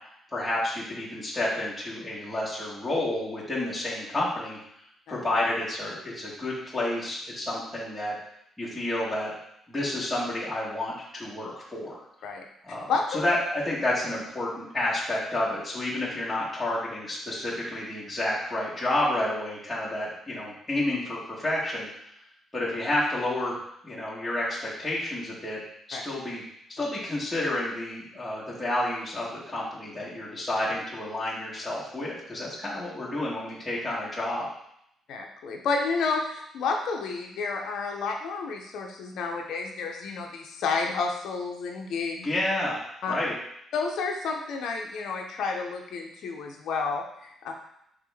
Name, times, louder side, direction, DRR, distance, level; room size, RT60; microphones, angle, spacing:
voice 1, 0.3-4.6 5.1-8.2 8.6-9.3 9.7-12.0 12.6-21.9 22.5-25.6 25.9-26.4 26.7-34.4 42.2-42.8 43.1-43.3, left 1 dB, 10° left, -8 dB, 1.4 m, -30 dB
voice 2, 35.1-42.3 43.0-43.1 43.7-47.5, left 4 dB, 75° left, 2 dB, 0.5 m, -30 dB
3.5 x 3.4 x 3.4 m, 0.75 s
cardioid pair, 90°, 0 cm